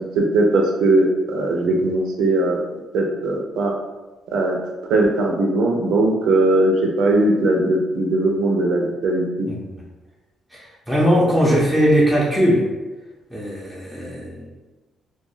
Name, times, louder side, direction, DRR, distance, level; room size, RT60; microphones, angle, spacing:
voice 1, 0.2-2.6 2.9-3.7 4.3-4.6 4.9-9.5, right 2 dB, 80° right, 1 dB, 0.5 m, -19 dB
voice 2, 10.9-12.7 13.3-14.5, equal, 5° left, -5 dB, 0.6 m, -19 dB
2.3 x 2.2 x 3.1 m, 1.2 s
cardioid pair, 90°, 0 cm